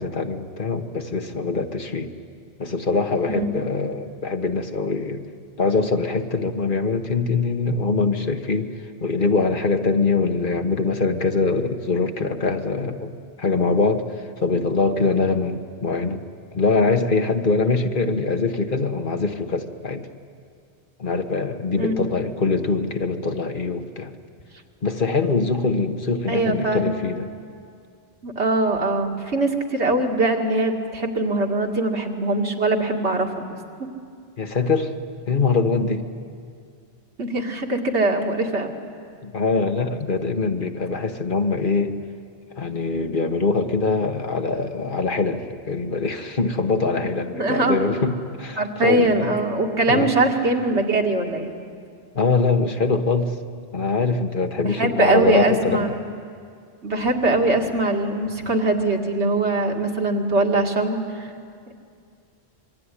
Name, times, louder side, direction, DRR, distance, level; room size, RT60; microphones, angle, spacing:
voice 1, 0.0-2.1 2.6-5.2 5.6-8.7 9.0-13.1 13.4-14.0 14.4-16.2 16.5-20.0 21.0-24.1 24.8-27.3 34.4-34.9 35.3-36.0 39.2-42.0 42.6-49.3 49.9-50.1 52.1-53.4 53.7-56.0, left 4 dB, 50° left, 6 dB, 1.5 m, -23 dB
voice 2, 3.3-3.7 21.8-22.3 26.3-26.9 28.2-33.3 33.8-33.9 37.2-38.7 46.9-47.0 47.3-47.8 48.6-51.5 54.6-55.9 56.8-61.3, right 2 dB, 85° right, 2 dB, 2.6 m, -22 dB
26.0 x 23.0 x 10.0 m, 2.2 s
omnidirectional pair, 1.1 m